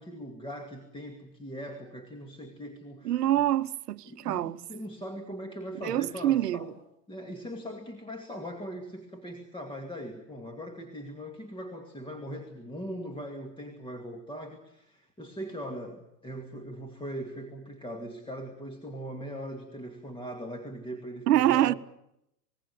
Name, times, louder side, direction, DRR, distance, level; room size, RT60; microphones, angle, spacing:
voice 1, 0.0-3.3 4.1-6.8 7.1-21.7, equal, 10° left, 2.4 m, -40 dB
voice 2, 3.0-4.6 5.8-6.6 21.3-21.7, right 13 dB, 75° right, 1.0 m, -25 dB
27.5 x 20.5 x 7.0 m
hypercardioid pair, 110°, 48 cm